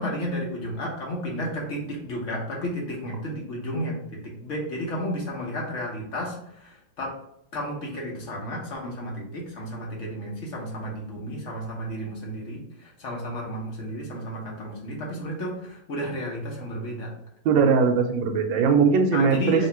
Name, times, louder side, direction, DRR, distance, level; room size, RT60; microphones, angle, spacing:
voice 1, 0.0-7.2 7.5-17.1 19.1-19.7, equal, 45° left, -2 dB, 1.1 m, -32 dB
voice 2, 17.4-19.7, right 5 dB, 75° right, 5 dB, 1.2 m, -20 dB
3.1 x 2.9 x 4.3 m, 0.76 s
omnidirectional pair, 2.3 m